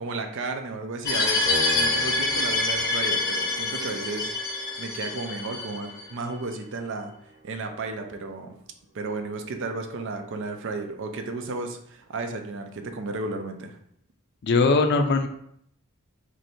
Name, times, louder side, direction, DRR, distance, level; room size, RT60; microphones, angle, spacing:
voice 1, 0.0-7.1 7.4-8.6 8.9-13.8, right 3 dB, 55° right, 6 dB, 0.4 m, -33 dB
sound 1, 1.0-6.0, left 3 dB, 15° left, 0.8 m, -26 dB
Piano, 1.5-8.0, equal, 40° right, 0.8 m, -40 dB
voice 2, 14.4-15.3, left 3 dB, 50° left, 6 dB, 0.4 m, -20 dB
3.1 x 2.6 x 4.3 m, 0.70 s
head